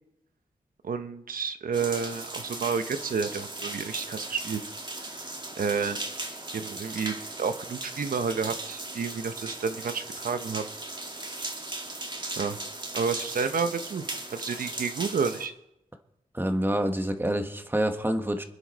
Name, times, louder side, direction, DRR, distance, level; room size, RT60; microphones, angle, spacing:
voice 1, 0.8-4.6 5.6-6.0 6.5-10.6 12.4-12.6 12.9-14.0 14.3-15.5, right 5 dB, 85° right, 9 dB, 1.1 m, -30 dB
sound 1, 1.7-15.5, right 2 dB, 35° right, 2.2 m, -37 dB
voice 2, 16.3-18.4, right 1 dB, 15° right, 5 dB, 1.6 m, -27 dB
26.0 x 9.8 x 4.3 m, 0.83 s
wide cardioid pair, 75°, 14 cm